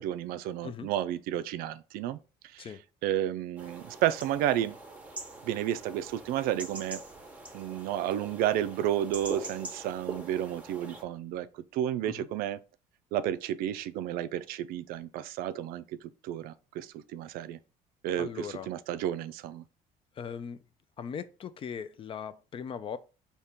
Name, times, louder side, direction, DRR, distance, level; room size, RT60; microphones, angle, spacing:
voice 1, 0.0-2.2 2.4-2.7 3.0-4.8 5.4-7.0 7.5-12.6 13.1-17.6 18.0-19.6, right 11 dB, 70° right, 0.4 m, -32 dB
sound 1, 3.6-11.0, right 2 dB, 10° right, 0.9 m, -43 dB
voice 2, 18.2-18.7 20.1-20.6 21.0-23.0, left 7 dB, 35° left, 0.4 m, -39 dB
4.2 x 2.9 x 3.5 m
cardioid pair, 110°, 16 cm